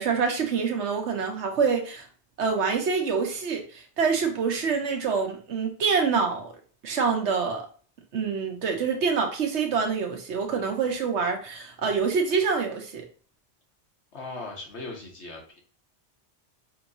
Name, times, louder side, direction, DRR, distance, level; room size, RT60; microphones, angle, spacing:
voice 1, 0.0-2.1 2.4-6.5 6.8-7.7 8.1-13.1, right 5 dB, 85° right, 1.2 m, -26 dB
voice 2, 14.1-15.6, left 3 dB, 80° left, 1.5 m, -38 dB
5.6 x 3.0 x 2.6 m
omnidirectional pair, 1.1 m